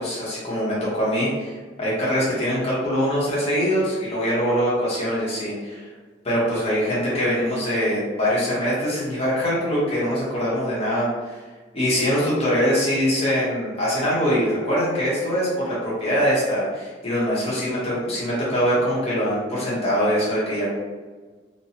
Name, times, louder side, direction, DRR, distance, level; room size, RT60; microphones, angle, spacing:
voice 1, 0.0-5.9 6.2-11.4 11.7-20.7, equal, 35° left, -9 dB, 1.0 m, -23 dB
2.6 x 2.2 x 2.8 m, 1.4 s
head